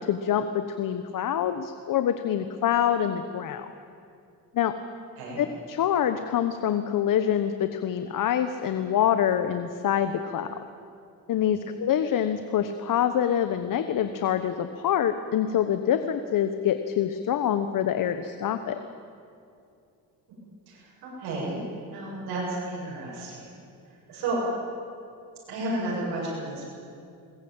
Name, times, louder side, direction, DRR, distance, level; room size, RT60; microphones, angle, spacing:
voice 1, 0.0-3.7 4.5-4.7 5.4-10.5 11.3-18.8, left 9 dB, 55° left, 9 dB, 1.2 m, -26 dB
voice 2, 20.7-21.6 21.9-23.4 24.1-24.4 25.5-26.6, right 2 dB, 80° right, -5 dB, 7.8 m, -32 dB
21.5 x 20.0 x 9.0 m, 2.5 s
cardioid pair, 105°, 38 cm